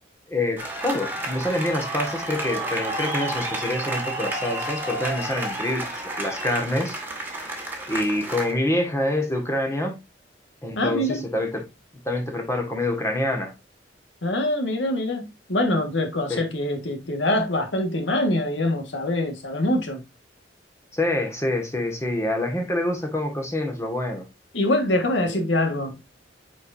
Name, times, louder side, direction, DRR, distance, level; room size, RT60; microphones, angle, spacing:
voice 1, 0.3-7.0 7.3-10.0 10.6-11.6 12.0-13.5 16.3-16.4 20.9-24.2, left 1 dB, 15° left, 1.7 m, -26 dB
sound 1, 0.6-8.5, right 2 dB, 10° right, 1.8 m, -31 dB
voice 2, 10.8-11.3 14.2-20.0 24.5-26.1, left 1 dB, 85° left, 1.7 m, -24 dB
8.4 x 4.9 x 2.6 m
head